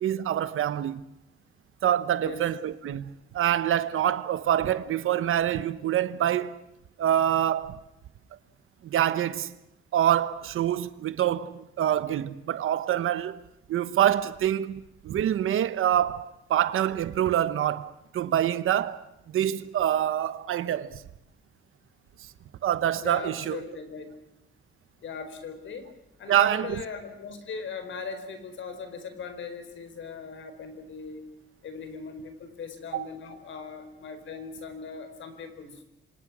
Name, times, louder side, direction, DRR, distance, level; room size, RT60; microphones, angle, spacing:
voice 1, 0.0-1.0 1.8-6.6 7.0-7.8 8.8-9.5 9.9-13.4 13.7-19.0 19.3-21.0 22.6-23.6 26.3-26.8 32.9-33.1, right 11 dB, 80° right, 1.0 m, -26 dB
voice 2, 23.0-24.1 25.0-25.9 26.2-31.3 31.6-35.8, left 5 dB, 65° left, 4.7 m, -39 dB
28.5 x 25.5 x 6.2 m
wide cardioid pair, 165°, 21 cm